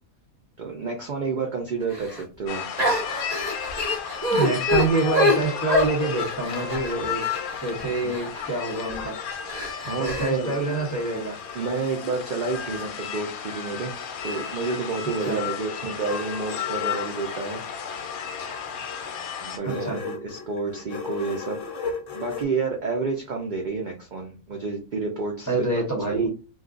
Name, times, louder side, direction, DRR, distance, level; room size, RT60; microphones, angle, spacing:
voice 1, 0.6-2.9 7.9-8.2 9.9-10.6 11.5-13.9 14.2-17.6 19.4-21.6 22.1-25.5 26.1-26.3, right 4 dB, 60° right, 1 dB, 0.5 m, -30 dB
sound 1, 1.9-2.2 2.8-8.4 8.9-9.1 9.5-10.3, left 1 dB, 30° right, 0.9 m, -25 dB
sound 2, 2.5-19.6, left 8 dB, 85° left, 1.1 m, -33 dB
voice 2, 4.3-7.2 7.6-9.2 10.0-11.4 15.2-15.4 19.6-20.0 25.5-26.3, right 3 dB, 15° left, -3 dB, 0.8 m, -26 dB
sound 3, 6.6-9.6 10.0-13.0 13.9-22.4, left 4 dB, 70° left, 1.0 m, -40 dB
2.5 x 2.3 x 3.7 m, 0.32 s
omnidirectional pair, 1.5 m